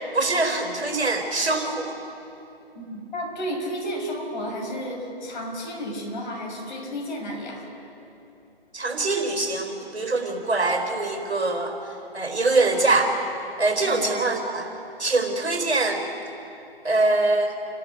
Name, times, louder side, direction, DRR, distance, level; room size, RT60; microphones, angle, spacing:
voice 1, 0.1-2.0 8.7-13.1 13.6-14.7 15.0-16.0 16.8-17.6, right 2 dB, 85° right, 4 dB, 4.3 m, -23 dB
voice 2, 2.7-7.7 13.8-14.3, equal, 45° left, 0 dB, 6.7 m, -32 dB
29.5 x 12.5 x 8.5 m, 2.8 s
figure-of-eight pair, 145°, 32 cm